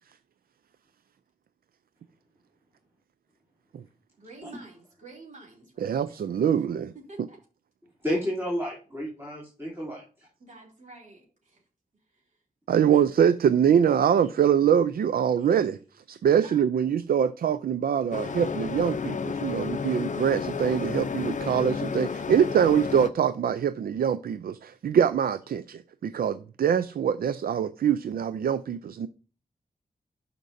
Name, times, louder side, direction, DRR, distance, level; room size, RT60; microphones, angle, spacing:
voice 1, 4.2-6.2 6.5-6.6 6.9-7.4 10.4-11.6 12.1-12.4 16.4-16.7, right 3 dB, 55° right, 3.1 m, -49 dB
voice 2, 5.8-6.9 12.7-15.8 16.1-29.1, right 8 dB, 85° right, 0.4 m, -24 dB
voice 3, 8.0-10.0 12.7-13.0, equal, 15° right, 3.0 m, -31 dB
sound 1, 18.1-23.1, left 5 dB, 55° left, 0.5 m, -31 dB
12.0 x 5.1 x 2.6 m
wide cardioid pair, 100°, 15 cm